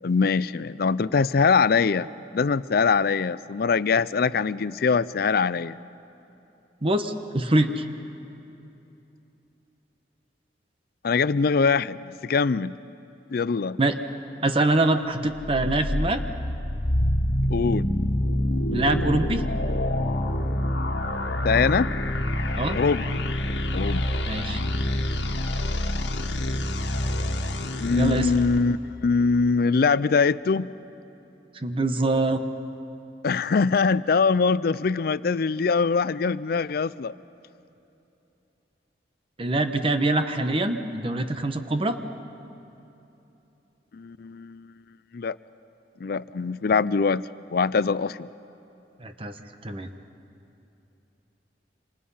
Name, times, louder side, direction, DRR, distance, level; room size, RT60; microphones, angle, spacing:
voice 1, 0.0-5.8 11.0-12.8 13.3-13.8 17.5-17.9 21.4-21.9 22.7-23.1 23.7-24.1 27.8-28.8 29.0-30.7 33.2-37.1 43.9-44.7 45.1-45.4 46.0-47.2 47.5-48.3, left 5 dB, 55° left, 17 dB, 0.4 m, -23 dB
voice 2, 6.8-7.8 13.8-13.9 14.4-16.2 18.7-19.4 22.6-22.8 24.3-24.6 28.0-28.3 31.6-32.4 39.4-42.0 49.0-49.4 49.6-49.9, right 2 dB, 30° right, 8 dB, 1.1 m, -24 dB
sound 1, 15.3-28.6, left 1 dB, 75° left, 1.6 m, -26 dB
28.0 x 26.0 x 5.6 m, 2.9 s
head